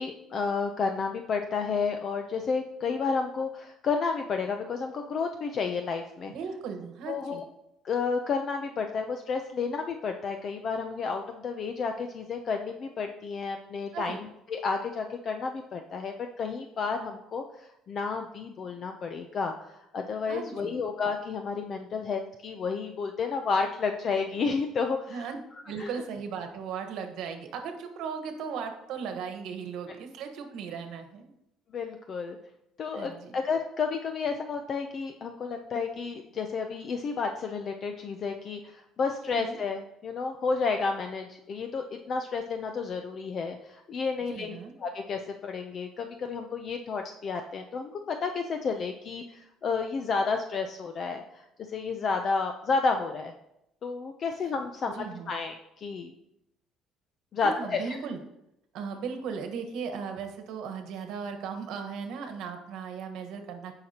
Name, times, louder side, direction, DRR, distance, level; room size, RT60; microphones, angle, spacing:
voice 1, 0.0-6.3 7.1-7.4 7.8-25.3 25.8-25.9 31.7-32.4 32.8-53.3 53.8-56.1 57.3-58.0, left 5 dB, 40° left, 5 dB, 0.6 m, -31 dB
voice 2, 6.3-7.4 13.9-14.2 20.3-20.8 25.1-25.4 25.6-31.3 32.9-33.4 39.4-39.6 44.3-44.7 55.0-55.3 57.4-58.2 58.7-63.7, right 6 dB, 65° right, 6 dB, 1.3 m, -37 dB
15.5 x 5.8 x 2.9 m, 0.84 s
cardioid pair, 150°, 0 cm